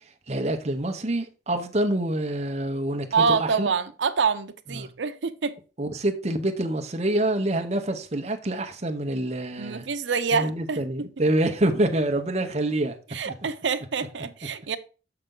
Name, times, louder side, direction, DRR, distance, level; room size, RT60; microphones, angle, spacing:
voice 1, 0.3-3.7 4.7-4.9 5.8-9.9 10.3-13.0 13.2-13.3, right 1 dB, 35° right, 0.9 m, -26 dB
voice 2, 3.1-5.5 9.6-11.1 13.1-14.8, right 5 dB, 90° right, 0.7 m, -26 dB
6.7 x 5.8 x 3.8 m
head